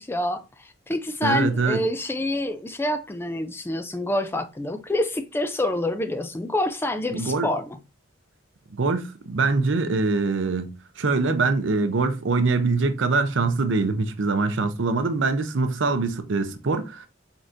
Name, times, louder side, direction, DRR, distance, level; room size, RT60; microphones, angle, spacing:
voice 1, 0.0-7.8, left 1 dB, 10° left, 0.3 m, -27 dB
voice 2, 1.2-1.8 7.1-7.5 8.8-17.1, right 3 dB, 70° right, 0.6 m, -23 dB
4.5 x 4.0 x 2.5 m
head